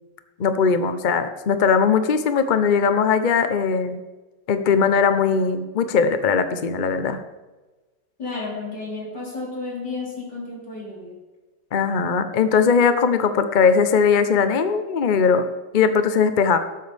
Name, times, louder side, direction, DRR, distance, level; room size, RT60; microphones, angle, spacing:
voice 1, 0.4-4.0 4.5-7.2 11.7-15.5 15.7-16.6, left 6 dB, 50° left, 9 dB, 0.5 m, -19 dB
voice 2, 8.2-11.1, left 3 dB, 70° left, -3 dB, 4.4 m, -32 dB
18.5 x 8.1 x 3.5 m, 1.2 s
omnidirectional pair, 2.0 m